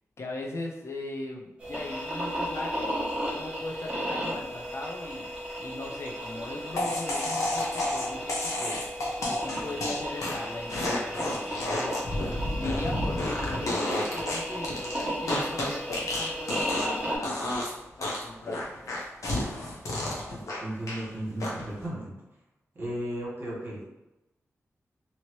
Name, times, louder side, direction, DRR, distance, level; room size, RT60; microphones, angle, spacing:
voice 1, 0.2-5.3 5.6-8.8 9.3-12.0 12.5-17.4 18.0-18.7, left 2 dB, 55° left, 0 dB, 0.5 m, -39 dB
sound 1, 1.6-17.2, equal, 20° right, 1.2 m, -35 dB
sound 2, 6.8-17.0 17.2-17.7 18.0-21.0 21.4-21.8, left 1 dB, 80° left, 0.8 m, -31 dB
voice 2, 20.3-22.1 22.8-23.8, right 1 dB, 45° right, -5 dB, 1.5 m, -35 dB
2.8 x 2.8 x 3.0 m, 0.96 s
wide cardioid pair, 85°, 5 cm